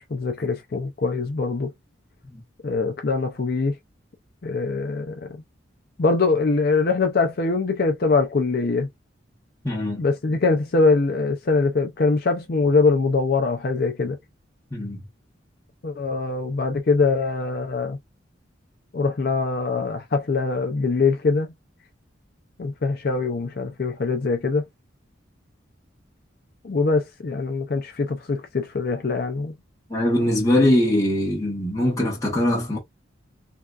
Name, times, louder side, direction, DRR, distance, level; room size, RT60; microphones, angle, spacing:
voice 1, 0.1-1.7 2.6-3.7 4.4-5.4 6.0-8.9 10.0-14.2 15.8-18.0 18.9-21.5 22.6-24.6 26.6-29.5, left 3 dB, 50° left, 0.5 m, -23 dB
voice 2, 9.6-10.0 14.7-15.0 29.9-32.8, left 1 dB, 15° left, 1.0 m, -22 dB
3.5 x 2.5 x 2.3 m
head